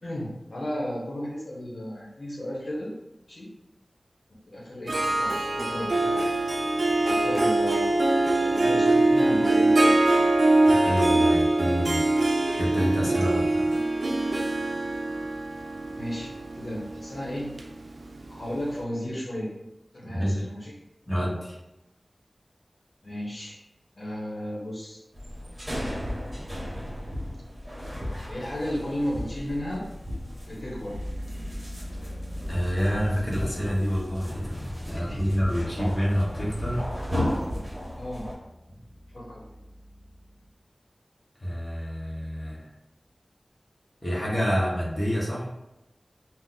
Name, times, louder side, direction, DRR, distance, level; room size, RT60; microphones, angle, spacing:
voice 1, 0.0-2.9 3.3-3.5 4.5-6.2 7.0-8.0 8.4-10.2 13.3-13.4 15.9-17.5 18.3-19.6 19.9-20.7 23.0-23.6 24.0-25.0 28.3-29.9 30.5-31.0 34.9-35.2 37.9-38.3 39.1-39.4, equal, 60° left, -6 dB, 1.0 m, -34 dB
Harp, 4.9-18.4, right 2 dB, 80° right, 0.4 m, -23 dB
voice 2, 10.7-12.1 12.6-13.7 20.1-20.4 21.1-21.6 32.5-36.8 41.4-42.6 44.0-45.5, equal, 25° left, -6 dB, 1.0 m, -28 dB
sound 1, 25.1-38.3, left 1 dB, 25° right, 1.1 m, -35 dB
sound 2, 30.9-40.5, equal, 85° left, 0.4 m, -40 dB
2.8 x 2.1 x 3.9 m, 0.93 s
wide cardioid pair, 65°, 0 cm